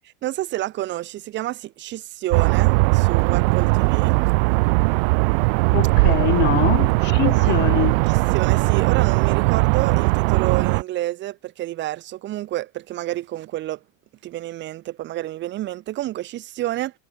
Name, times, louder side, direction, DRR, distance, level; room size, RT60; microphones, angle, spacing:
voice 1, 0.2-4.2 7.2-7.6 8.1-13.8 14.2-16.9, right 15 dB, 30° right, 7.8 m, -29 dB
sound 1, 2.3-10.8, right 28 dB, 50° right, 4.6 m, -19 dB
voice 2, 5.7-8.0, left 16 dB, 30° left, 2.0 m, -24 dB
supercardioid pair, 175°, 38 cm